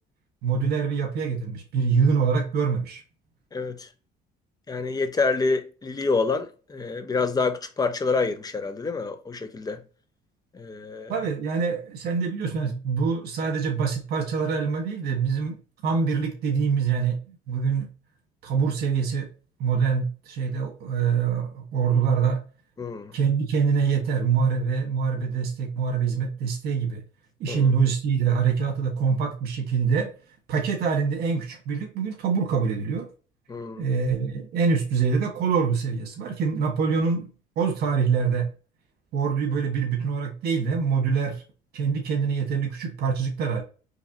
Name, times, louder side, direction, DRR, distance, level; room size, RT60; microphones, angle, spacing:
voice 1, 0.4-3.0 11.1-15.6 15.8-17.2 17.5-17.9 18.4-19.3 19.6-22.4 23.1-27.0 27.4-30.1 30.5-33.1 33.8-37.3 37.5-38.5 39.1-41.4 41.7-43.6, right 5 dB, 70° right, 1.5 m, -25 dB
voice 2, 3.5-3.9 4.7-9.8 10.5-11.1 22.8-23.2 27.5-27.7 33.5-33.9, left 4 dB, 20° left, 0.6 m, -27 dB
4.7 x 3.2 x 2.8 m
cardioid pair, 110°, 17 cm